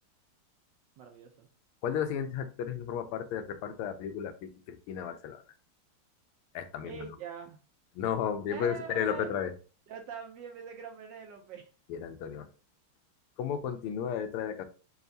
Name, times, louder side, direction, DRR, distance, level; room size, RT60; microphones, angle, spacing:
voice 1, 1.0-1.5 6.8-7.6 8.5-9.4 9.9-11.7, right 6 dB, 75° right, 4 dB, 1.1 m, -43 dB
voice 2, 1.8-5.4 6.5-7.1 7.9-9.5 11.9-12.5 13.4-14.6, left 8 dB, 85° left, 8 dB, 1.5 m, -33 dB
5.6 x 2.4 x 2.6 m, 0.35 s
omnidirectional pair, 2.3 m